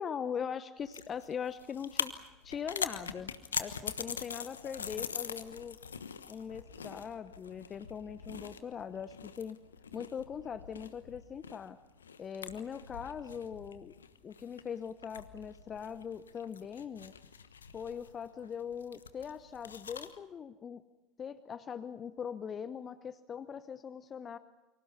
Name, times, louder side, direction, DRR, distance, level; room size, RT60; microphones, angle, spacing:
voice 1, 0.0-2.1 2.4-3.3 3.6-5.8 6.3-9.6 9.9-11.8 12.2-13.9 14.2-17.1 17.7-20.8 21.2-24.4, left 7 dB, 30° left, 13 dB, 0.9 m, -41 dB
sound 1, 0.8-20.2, left 7 dB, 80° left, 1.2 m, -43 dB
29.0 x 25.0 x 5.7 m, 1.1 s
figure-of-eight pair, 75°, 0 cm